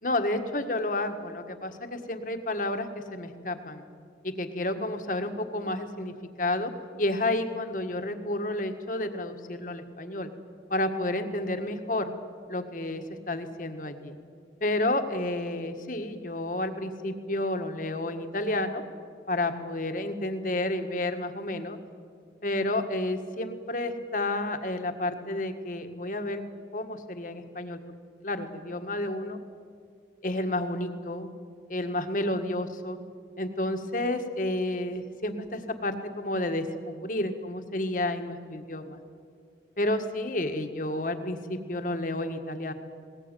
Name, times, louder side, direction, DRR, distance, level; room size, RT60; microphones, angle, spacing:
voice 1, 0.0-3.9 4.2-6.7 7.0-10.3 10.7-12.1 12.5-14.2 14.6-18.8 19.3-21.8 22.4-26.4 26.7-27.8 28.2-29.4 30.2-31.3 31.7-33.0 33.4-39.0 39.8-42.7, left 1 dB, 50° left, 7 dB, 1.7 m, -30 dB
20.0 x 19.5 x 9.2 m, 2.2 s
head